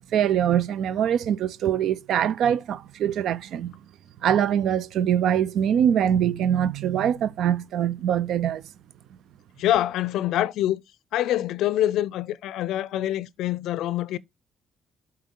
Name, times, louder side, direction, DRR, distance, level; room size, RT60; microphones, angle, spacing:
voice 1, 0.0-3.7 4.2-8.6, right 9 dB, 80° right, 0.5 m, -23 dB
voice 2, 9.6-10.8 11.1-14.2, left 13 dB, 85° left, 0.4 m, -25 dB
12.0 x 4.4 x 3.7 m
cardioid pair, 90°, 0 cm